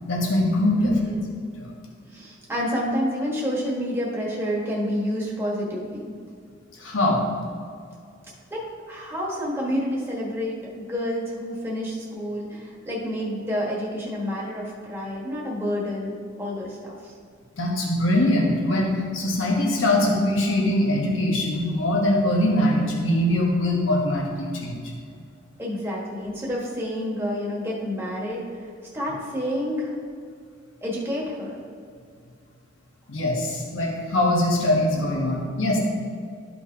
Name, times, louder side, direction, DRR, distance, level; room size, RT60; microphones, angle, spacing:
voice 1, 0.1-1.0 1.6-1.7 6.8-7.2 17.6-24.8 33.1-35.8, left 1 dB, 85° left, -2 dB, 1.2 m, -22 dB
voice 2, 0.7-1.3 2.1-6.0 8.5-17.1 25.6-28.7 28.9-30.0 30.8-31.6, equal, 10° right, -5 dB, 1.4 m, -29 dB
13.0 x 4.5 x 2.8 m, 2.2 s
head